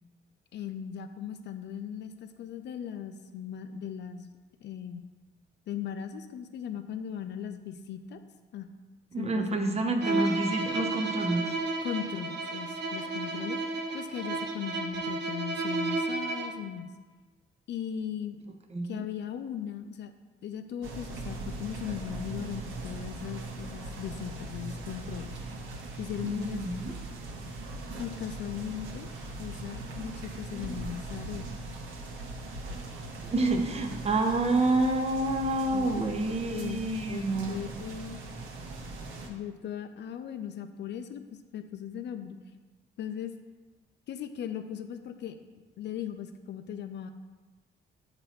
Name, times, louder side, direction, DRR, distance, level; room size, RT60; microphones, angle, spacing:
voice 1, 0.5-4.3 4.6-5.0 5.7-8.2 8.5-8.7 9.2-9.8 11.8-13.6 13.9-16.9 17.7-18.4 18.8-20.1 20.4-25.3 26.0-26.9 28.0-29.1 29.4-31.5 35.7-36.8 37.1-38.2 39.3-42.4 43.0-43.3 44.1-45.4 45.8-47.1, left 9 dB, 60° left, 8 dB, 0.5 m, -38 dB
voice 2, 9.1-11.6 18.7-19.0 26.2-26.9 33.2-37.6, right 2 dB, 30° right, 4 dB, 0.8 m, -28 dB
Bowed string instrument, 10.0-16.7, right 3 dB, 60° right, 0.8 m, -32 dB
sound 1, 20.8-39.3, right 2 dB, 85° right, 1.0 m, -40 dB
6.8 x 3.0 x 5.6 m, 1.3 s
cardioid pair, 90°, 20 cm